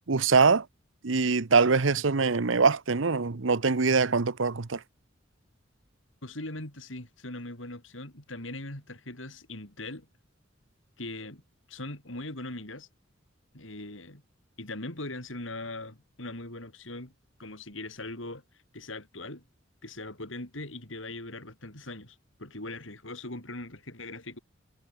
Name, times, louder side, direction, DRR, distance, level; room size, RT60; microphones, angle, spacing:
voice 1, 0.1-0.6 1.0-4.8, right 4 dB, 70° right, 0.9 m, -23 dB
voice 2, 6.2-10.1 11.0-11.4 11.7-12.9 13.5-14.2 14.6-17.1 17.4-18.4 18.7-19.4 19.8-24.4, left 2 dB, 75° left, 5.8 m, -40 dB
head